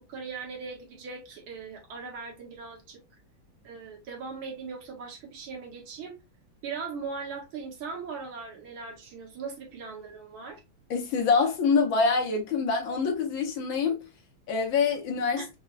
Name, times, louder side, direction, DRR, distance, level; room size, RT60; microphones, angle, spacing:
voice 1, 0.0-3.0 3.6-6.2 6.6-10.6 15.4-15.5, right 5 dB, 80° right, 2.0 m, -39 dB
voice 2, 10.9-14.0 14.5-15.4, left 5 dB, 70° left, 1.5 m, -25 dB
4.6 x 2.2 x 2.3 m
omnidirectional pair, 2.3 m